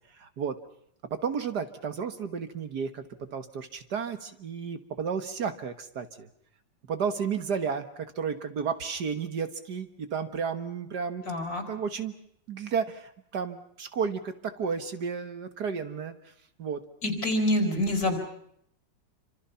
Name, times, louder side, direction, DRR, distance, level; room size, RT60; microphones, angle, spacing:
voice 1, 0.1-0.6 1.1-6.3 6.9-11.4 11.7-12.1 12.5-16.2 16.6-16.8, right 6 dB, 60° right, 9 dB, 1.9 m, -32 dB
voice 2, 11.3-11.6 17.0-18.2, left 1 dB, 50° left, 5 dB, 5.4 m, -26 dB
27.5 x 26.0 x 5.7 m, 0.70 s
omnidirectional pair, 2.0 m